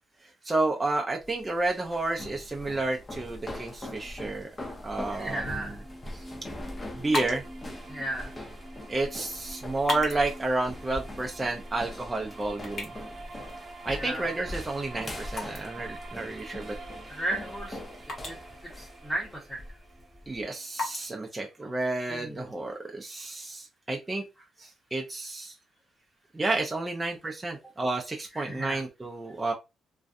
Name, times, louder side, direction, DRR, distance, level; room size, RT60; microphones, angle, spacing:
voice 1, 0.4-4.5 4.8-5.8 6.1-6.3 6.9-7.4 8.9-12.9 13.8-16.8 20.3-24.2 24.6-25.5 26.3-29.5, right 2 dB, 20° right, 1 dB, 0.4 m, -31 dB
sound 1, 1.2-20.4, left 1 dB, 25° left, 0.6 m, -42 dB
voice 2, 5.1-5.8 7.9-8.3 13.9-14.3 17.1-17.8 18.1-19.6 21.6-21.7 22.0-22.5 28.3-28.8, right 1 dB, 5° left, -4 dB, 0.9 m, -35 dB
sound 2, 5.1-21.1, right 2 dB, 40° right, 0.9 m, -47 dB
sound 3, 6.9-22.3, left 2 dB, 55° left, 1.0 m, -42 dB
2.5 x 2.2 x 2.4 m, 0.26 s
cardioid pair, 90°, 0 cm